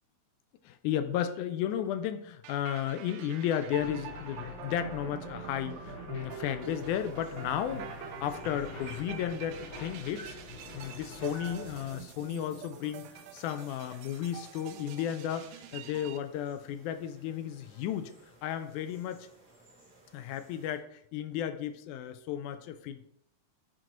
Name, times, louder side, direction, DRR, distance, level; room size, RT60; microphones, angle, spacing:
voice 1, 0.6-10.4 10.7-19.3 20.1-23.0, left 10 dB, 85° left, 10 dB, 2.0 m, -34 dB
sound 1, 2.4-16.2, right 8 dB, 80° right, 1.9 m, -46 dB
sound 2, 3.7-12.0, left 3 dB, 60° left, 2.7 m, -46 dB
sound 3, 6.6-20.8, right 2 dB, 20° right, 2.7 m, -60 dB
8.9 x 3.9 x 3.0 m, 0.71 s
omnidirectional pair, 3.4 m